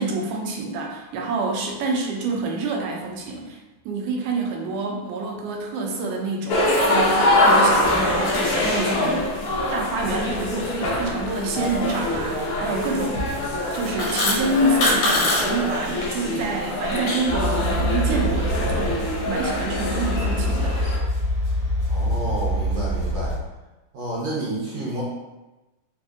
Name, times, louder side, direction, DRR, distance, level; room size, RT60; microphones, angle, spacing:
voice 1, 0.0-3.6 3.9-9.3 9.7-13.3 13.7-20.8, right 2 dB, 90° right, 0 dB, 2.1 m, -27 dB
sound 1, 6.5-21.0, left 1 dB, 90° left, 1.2 m, -24 dB
sound 2, 13.7-15.5 15.7-16.1 16.5-17.4, left 1 dB, 70° left, 1.8 m, -23 dB
sound 3, 17.3-23.3, equal, 45° right, 0.7 m, -25 dB
voice 2, 21.9-23.4 23.9-25.0, right 1 dB, 70° right, -5 dB, 1.6 m, -30 dB
4.9 x 2.6 x 2.4 m, 1.1 s
omnidirectional pair, 3.6 m